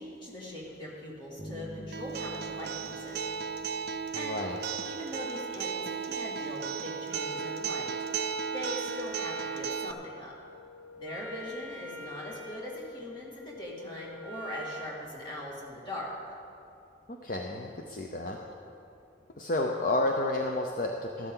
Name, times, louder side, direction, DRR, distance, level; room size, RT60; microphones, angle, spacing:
voice 1, 0.0-3.2 4.1-4.4 4.8-10.3 11.0-16.4, left 1 dB, 25° left, -5 dB, 2.3 m, -41 dB
sound 1, 1.4-4.4, right 1 dB, 20° right, 1.3 m, -46 dB
Acoustic guitar, 1.9-9.9, right 6 dB, 55° right, 0.4 m, -35 dB
voice 2, 4.1-4.6 17.1-18.4 19.4-21.3, left 2 dB, 45° left, 1 dB, 0.6 m, -31 dB
Wind instrument woodwind instrument, 7.1-15.0, left 1 dB, 75° left, 1.0 m, -45 dB
13.5 x 12.5 x 3.9 m, 2.7 s
head